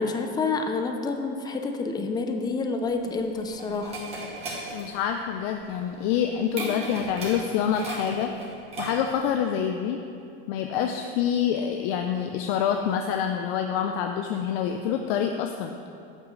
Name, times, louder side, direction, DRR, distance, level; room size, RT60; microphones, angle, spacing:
voice 1, 0.0-4.0, left 3 dB, 15° left, 5 dB, 0.5 m, -28 dB
sound 1, 2.8-9.3, right 2 dB, 20° right, 2.1 m, -37 dB
voice 2, 4.7-8.3 8.8-10.0 10.5-15.7, left 8 dB, 70° left, 5 dB, 0.6 m, -26 dB
8.3 x 8.2 x 3.8 m, 2.6 s
supercardioid pair, 140°, 30 cm